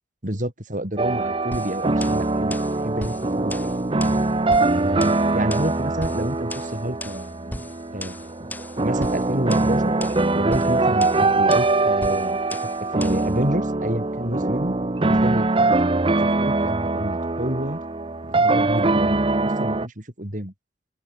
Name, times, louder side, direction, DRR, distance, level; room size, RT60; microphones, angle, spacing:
voice 1, 0.2-3.7 4.7-7.5 7.9-10.0 10.3-14.8 15.0-15.5 16.4-17.8 18.2-20.5, right 1 dB, 45° right, 4.7 m, -29 dB
sound 1, 1.0-19.9, right 2 dB, 30° right, 0.8 m, -22 dB
sound 2, 1.5-13.3, left 1 dB, 10° left, 3.4 m, -37 dB
open air
head